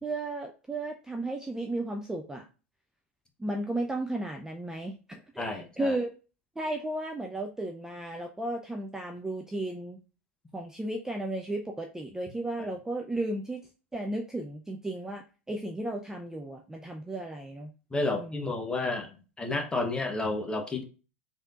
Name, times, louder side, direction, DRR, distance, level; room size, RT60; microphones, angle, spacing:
voice 1, 0.0-2.5 3.4-6.1 6.6-10.0 10.5-13.7 13.9-17.7 18.1-18.5, right 2 dB, 5° right, 3 dB, 0.4 m, -34 dB
voice 2, 5.4-6.0 12.6-12.7 17.9-20.8, left 2 dB, 10° left, 3 dB, 0.8 m, -31 dB
3.4 x 2.7 x 2.4 m, 0.34 s
hypercardioid pair, 90°, 7 cm